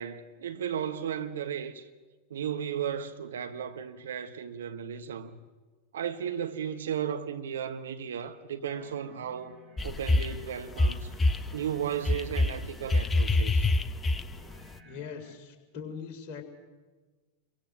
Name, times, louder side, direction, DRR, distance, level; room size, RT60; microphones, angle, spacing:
voice 1, 0.0-1.9 2.3-5.4 5.9-9.5 9.8-11.2 11.5-13.7, right 8 dB, 65° right, 1.2 m, -35 dB
sound 1, 8.7-15.3, equal, 20° right, 3.5 m, -55 dB
sound 2, 9.8-10.4 10.7-11.5 12.1-14.6, left 2 dB, 15° left, 0.8 m, -25 dB
voice 2, 14.8-16.4, left 6 dB, 40° left, 3.9 m, -41 dB
28.0 x 23.0 x 6.4 m
figure-of-eight pair, 90°, 0 cm